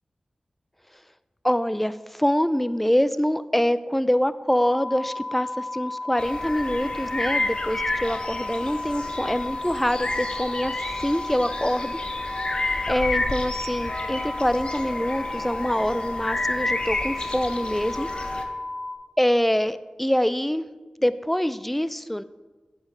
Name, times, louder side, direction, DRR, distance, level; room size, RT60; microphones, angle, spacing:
voice 1, 1.4-12.0 12.9-18.1 19.2-20.7 21.0-22.2, equal, 5° left, 14 dB, 0.4 m, -25 dB
sound 1, 4.5-18.9, left 2 dB, 30° right, 1.4 m, -33 dB
sound 2, 6.2-18.4, left 2 dB, 45° left, 0.9 m, -31 dB
8.9 x 5.2 x 5.0 m, 1.3 s
cardioid pair, 50°, 2 cm